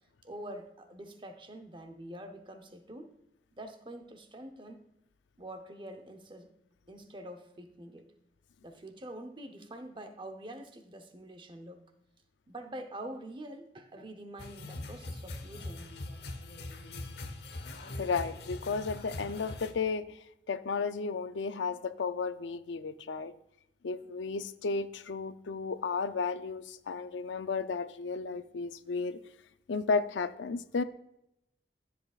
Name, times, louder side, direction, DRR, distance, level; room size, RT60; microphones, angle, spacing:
voice 1, 0.2-3.1 3.5-4.8 5.4-6.5 6.9-8.1 8.6-11.8 12.5-16.0, right 1 dB, 25° right, 7 dB, 0.8 m, -46 dB
sound 1, 14.4-19.7, left 2 dB, 65° left, 1.0 m, -42 dB
voice 2, 18.0-20.2 20.5-23.3 23.8-29.2 29.7-30.8, left 4 dB, 90° left, 12 dB, 0.5 m, -33 dB
13.5 x 7.7 x 2.4 m, 0.82 s
head